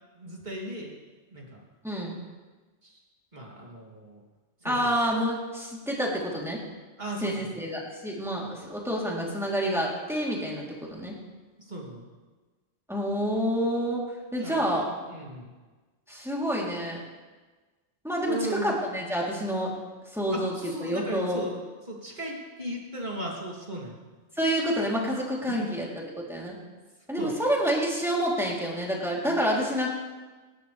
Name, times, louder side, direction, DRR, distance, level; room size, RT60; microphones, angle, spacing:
voice 1, 0.2-0.9 1.3-1.6 2.8-3.0 3.3-4.2 4.6-4.9 7.0-7.6 11.6-12.1 14.4-15.5 18.3-18.9 20.3-21.6 21.9-24.0 25.6-26.0 27.2-27.3, right 1 dB, 40° right, -3 dB, 3.3 m, -37 dB
voice 2, 1.8-2.2 4.6-6.6 7.2-11.1 12.9-14.9 16.1-17.0 18.0-19.7 20.1-20.5 20.8-21.4 24.4-25.9 26.3-26.6 27.1-29.9, equal, ahead, -4 dB, 3.7 m, -28 dB
27.5 x 12.5 x 3.5 m, 1.3 s
omnidirectional pair, 1.2 m